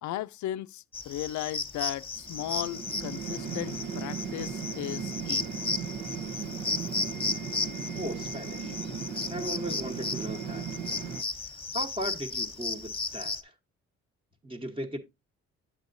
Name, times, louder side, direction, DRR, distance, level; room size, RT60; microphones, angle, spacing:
voice 1, 0.0-5.5, left 13 dB, 70° left, 0.5 m, -36 dB
sound 1, 0.9-13.4, left 4 dB, 20° left, 1.1 m, -35 dB
sound 2, 2.2-11.2, right 6 dB, 75° right, 1.0 m, -37 dB
voice 2, 7.9-8.8 9.3-10.7 11.3-13.5 14.4-15.0, equal, 20° right, 1.1 m, -37 dB
8.0 x 7.7 x 2.6 m
cardioid pair, 90°, 30 cm